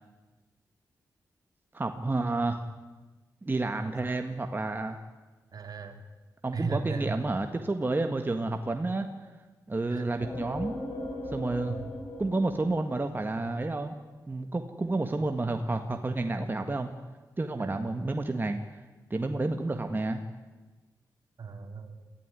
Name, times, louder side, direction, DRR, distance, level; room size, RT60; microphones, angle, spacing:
voice 1, 1.7-2.6 3.4-5.0 6.4-9.1 9.7-10.8 11.3-11.8 12.2-14.0 14.3-16.9 17.4-18.8 19.1-20.2, right 2 dB, 30° right, 5 dB, 1.7 m, -30 dB
voice 2, 5.5-6.0 6.5-7.1 9.9-10.0 11.7-11.9 17.6-17.8 21.4-22.0, right 4 dB, 60° right, 5 dB, 2.9 m, -36 dB
sound 1, 10.2-13.8, left 1 dB, 85° left, 6.6 m, -39 dB
23.5 x 15.0 x 9.9 m, 1.2 s
cardioid pair, 75°, 7 cm